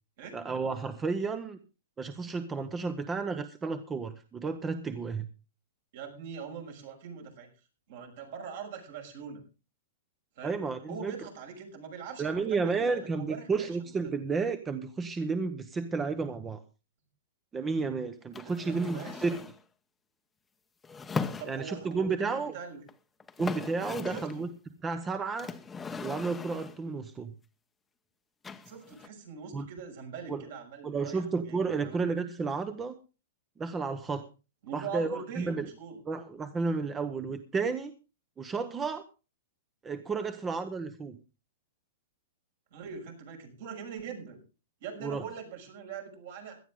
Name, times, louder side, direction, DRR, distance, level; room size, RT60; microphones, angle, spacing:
voice 1, 0.3-1.6 2.0-5.3 10.4-11.1 12.2-16.6 17.5-19.5 21.5-22.6 23.4-24.5 24.8-25.5 26.0-27.3 29.5-29.7 30.3-30.4 30.8-32.9 33.6-34.3 34.7-35.7 36.1-37.9 38.4-39.1 39.8-41.2 45.0-45.2, right 4 dB, 15° right, 11 dB, 0.9 m, -32 dB
voice 2, 5.9-7.5 7.9-9.4 10.4-10.6 10.9-13.7 18.4-19.2 21.4-22.8 24.0-24.5 28.7-32.0 34.6-36.0 42.7-44.4 44.8-46.6, right 6 dB, 60° right, 3 dB, 6.1 m, -42 dB
sound 1, 18.3-19.6 20.8-21.9 22.9-23.0 23.2-24.4 25.4-26.9 28.4-29.1, left 4 dB, 10° left, 0.9 m, -39 dB
17.5 x 12.5 x 3.6 m, 0.32 s
hypercardioid pair, 140°, 0 cm